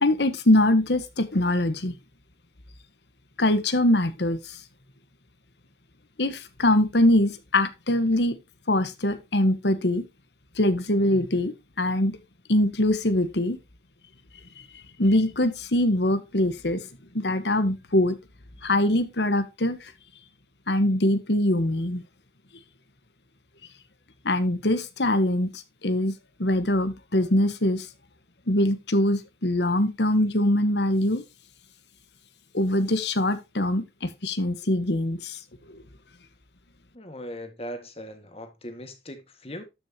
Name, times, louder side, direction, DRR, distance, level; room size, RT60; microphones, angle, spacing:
voice 1, 0.0-1.9 3.4-4.6 6.2-8.4 8.7-10.0 10.6-12.1 12.5-13.6 15.0-16.8 17.1-18.1 18.6-19.9 20.7-22.0 24.2-26.1 26.4-27.9 28.5-31.2 32.5-35.4, left 1 dB, 75° left, 1.4 m, -23 dB
voice 2, 36.9-39.6, equal, 35° left, 1.9 m, -39 dB
12.5 x 6.3 x 2.9 m
head